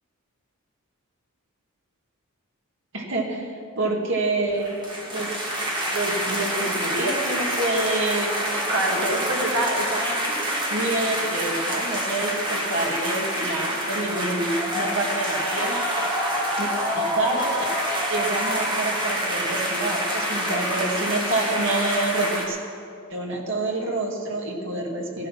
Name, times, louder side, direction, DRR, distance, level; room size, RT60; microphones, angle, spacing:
voice 1, 2.9-3.5 3.8-4.7 5.1-5.3 5.9-10.3 10.7-15.8 16.6-17.6 18.1-22.6 23.1-25.3, right 2 dB, 60° right, 0 dB, 2.2 m, -27 dB
sound 1, 4.6-22.4, equal, 20° right, 2.2 m, -27 dB
15.5 x 12.0 x 5.8 m, 2.4 s
head